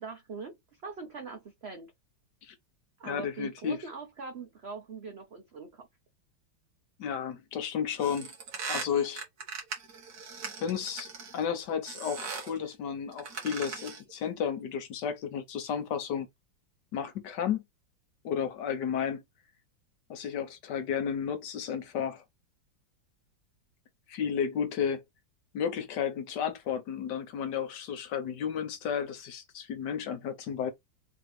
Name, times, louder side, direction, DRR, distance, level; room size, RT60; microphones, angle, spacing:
voice 1, 0.0-1.9 3.0-5.9, right 4 dB, 85° right, 0.5 m, -42 dB
voice 2, 3.0-3.8 7.0-8.3 8.7-9.2 10.6-16.3 16.9-17.6 18.2-19.2 20.1-22.2 24.1-25.0 25.5-30.7, left 7 dB, 70° left, 1.3 m, -32 dB
sound 1, 8.0-11.4 11.8-12.6 13.1-14.1, right 5 dB, 55° right, 1.8 m, -39 dB
4.0 x 2.9 x 3.1 m
omnidirectional pair, 2.1 m